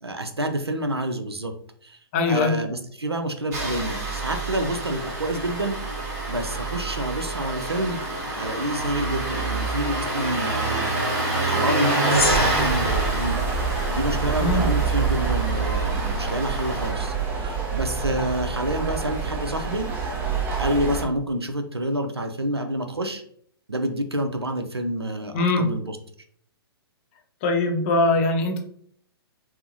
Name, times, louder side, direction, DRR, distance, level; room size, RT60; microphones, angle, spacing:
voice 1, 0.0-1.5 1.8-2.0 2.3-5.8 6.3-8.0 8.4-11.1 11.4-13.4 13.9-19.9 20.6-23.2 23.7-26.0, right 1 dB, 85° right, 6 dB, 0.5 m, -28 dB
voice 2, 2.1-2.5 14.4-14.7 25.3-25.6 27.4-28.6, left 2 dB, 30° left, 2 dB, 0.6 m, -21 dB
Engine starting, 3.5-16.9, right 2 dB, 40° right, 1.0 m, -28 dB
Gong, 12.1-14.7, left 4 dB, 70° left, 0.6 m, -33 dB
sound 1, 12.2-21.1, right 5 dB, 15° right, 0.5 m, -26 dB
4.4 x 2.1 x 2.6 m, 0.62 s
figure-of-eight pair, 120°, 13 cm